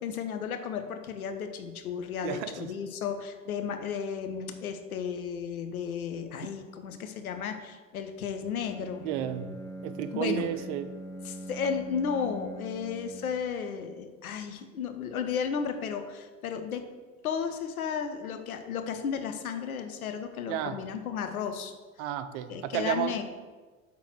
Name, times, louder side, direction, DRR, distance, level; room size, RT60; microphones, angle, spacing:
voice 1, 0.0-9.1 10.1-10.5 11.2-16.8 17.2-21.7 22.5-23.2, left 7 dB, 85° left, 7 dB, 0.7 m, -34 dB
voice 2, 2.2-2.7 9.0-9.5 9.8-10.9 20.5-20.8 22.0-23.2, right 11 dB, 55° right, 11 dB, 0.6 m, -32 dB
Bowed string instrument, 8.4-13.5, right 1 dB, 5° left, 0.9 m, -42 dB
5.9 x 3.8 x 5.9 m, 1.4 s
hypercardioid pair, 80°, 42 cm